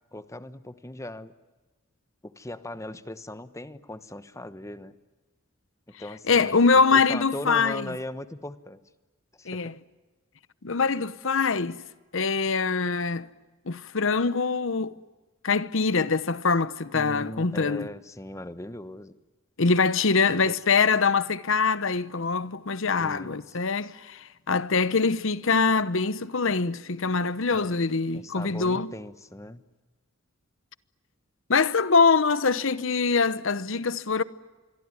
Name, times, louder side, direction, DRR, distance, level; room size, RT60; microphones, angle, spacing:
voice 1, 0.1-1.3 2.2-4.9 5.9-8.8 9.3-9.7 16.9-19.1 20.3-20.6 23.0-23.6 27.5-27.8 28.1-29.6, left 1 dB, 15° left, 1.1 m, -39 dB
voice 2, 6.3-7.9 9.5-9.7 10.6-11.8 12.1-13.3 13.7-14.9 15.4-17.9 19.6-28.9 31.5-34.2, left 4 dB, 70° left, 0.9 m, -24 dB
27.0 x 22.5 x 9.7 m
head